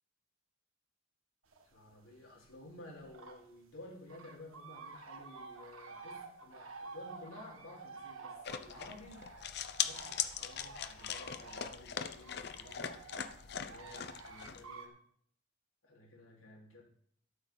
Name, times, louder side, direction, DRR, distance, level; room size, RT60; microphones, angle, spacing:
sound 1, 1.5-2.0 2.4-3.4 3.7-3.8 4.1-14.9, right 4 dB, 80° right, 1.8 m, -51 dB
voice 1, 1.7-13.0 13.4-15.0 15.8-16.8, left 1 dB, 85° left, -3 dB, 4.5 m, -53 dB
sound 2, 8.4-14.6, left 9 dB, 50° left, 0.8 m, -40 dB
13.0 x 12.5 x 4.1 m, 0.64 s
head